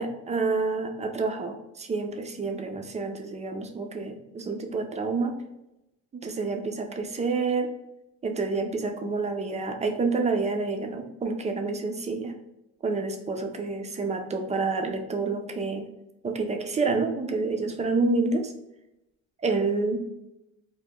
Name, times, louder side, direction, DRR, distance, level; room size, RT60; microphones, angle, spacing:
voice 1, 0.0-5.3 6.1-7.7 8.2-12.3 12.8-15.8 16.2-18.5 19.4-20.0, right 3 dB, 20° right, 4 dB, 0.3 m, -28 dB
2.4 x 2.1 x 3.5 m, 0.88 s
cardioid pair, 105°, 33 cm